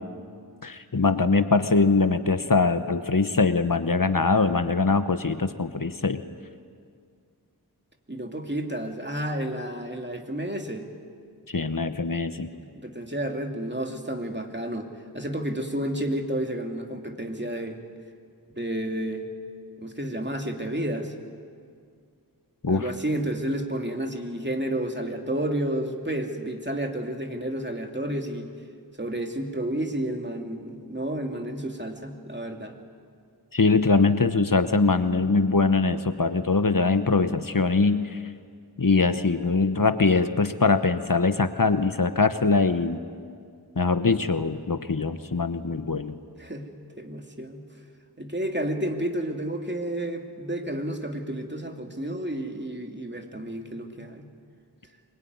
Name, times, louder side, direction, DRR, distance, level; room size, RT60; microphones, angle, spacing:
voice 1, 0.6-6.2 11.5-12.5 22.6-22.9 33.5-38.2 38.8-43.0 43.8-46.1, left 4 dB, 60° left, 10 dB, 1.1 m, -22 dB
voice 2, 8.1-10.9 12.6-14.9 15.1-17.8 18.6-19.3 19.8-21.1 22.7-28.5 29.0-32.7 46.4-46.7 47.0-47.6 48.2-54.3, right 1 dB, 30° right, 3 dB, 2.7 m, -31 dB
24.5 x 22.0 x 9.6 m, 2.2 s
wide cardioid pair, 40°, 38 cm